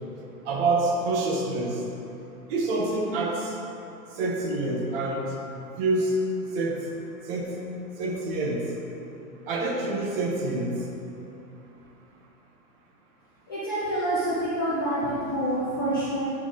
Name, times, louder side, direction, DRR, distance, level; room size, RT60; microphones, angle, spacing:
voice 1, 0.5-1.8 2.5-3.5 4.2-5.3 5.8-6.2 6.5-6.8 7.3-7.5 8.0-8.7 9.5-10.8, right 2 dB, 35° right, 0 dB, 1.0 m, -26 dB
voice 2, 13.5-16.3, right 1 dB, 15° left, -11 dB, 0.3 m, -27 dB
8.6 x 3.4 x 3.8 m, 2.8 s
hypercardioid pair, 130°, 48 cm